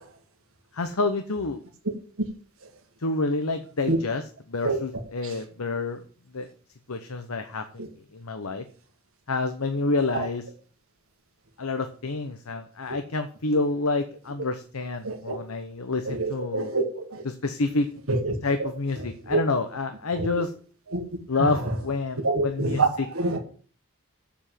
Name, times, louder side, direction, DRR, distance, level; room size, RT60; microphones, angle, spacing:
voice 1, 0.7-1.6 3.0-6.0 6.3-6.5 6.9-7.8 8.1-8.6 9.3-10.4 11.6-16.7 17.2-17.9 18.4-20.5 21.3-23.1, left 3 dB, 75° left, 8 dB, 1.0 m, -28 dB
voice 2, 15.0-15.4 16.0-17.2 18.1-18.7 19.3-19.4 20.2-20.3 20.9-21.0 21.4-21.7 22.2-23.4, right 2 dB, 65° right, 5 dB, 1.7 m, -26 dB
7.3 x 7.2 x 7.5 m, 0.42 s
head